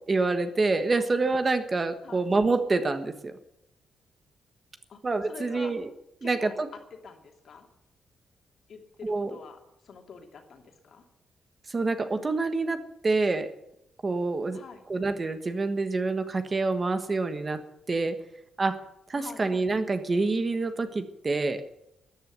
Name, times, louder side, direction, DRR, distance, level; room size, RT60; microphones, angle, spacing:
voice 1, 0.1-3.3 5.0-5.9 6.2-6.7 9.0-9.3 11.7-13.5 14.0-14.6 14.9-17.6 17.9-18.1 18.6-18.8 19.1-21.6, right 3 dB, 25° right, 9 dB, 1.4 m, -27 dB
voice 2, 5.3-5.7 6.2-7.7 8.7-11.0 14.5-14.8 19.1-19.5, left 5 dB, 55° left, 4 dB, 2.8 m, -46 dB
14.0 x 10.5 x 9.3 m, 0.81 s
wide cardioid pair, 150°, 0 cm